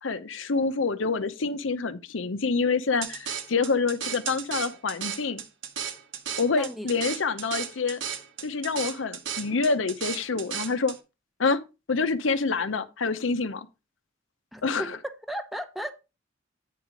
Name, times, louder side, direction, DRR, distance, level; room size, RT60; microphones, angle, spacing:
voice 1, 0.0-5.4 6.4-8.0 8.4-11.0 11.4-11.6 11.9-13.7 14.6-15.0, left 4 dB, 80° left, 0.7 m, -27 dB
sound 1, 3.0-11.0, right 8 dB, 75° right, 1.1 m, -35 dB
voice 2, 6.6-6.9 14.5-15.9, equal, ahead, 0.8 m, -35 dB
8.5 x 4.7 x 5.1 m
head